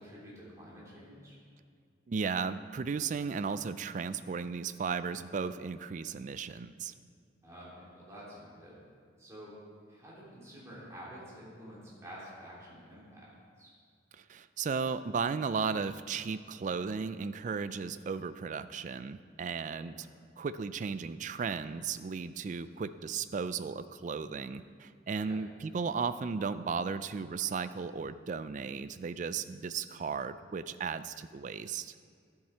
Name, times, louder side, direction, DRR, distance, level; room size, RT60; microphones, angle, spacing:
voice 1, 0.0-1.3 7.4-8.8 9.2-9.5 9.9-13.7 19.9-20.1 25.2-25.4, equal, 15° right, -7 dB, 2.9 m, -49 dB
voice 2, 2.1-6.9 14.1-20.1 20.4-31.9, right 5 dB, 40° right, 13 dB, 0.3 m, -35 dB
11.5 x 7.3 x 4.4 m, 2.2 s
head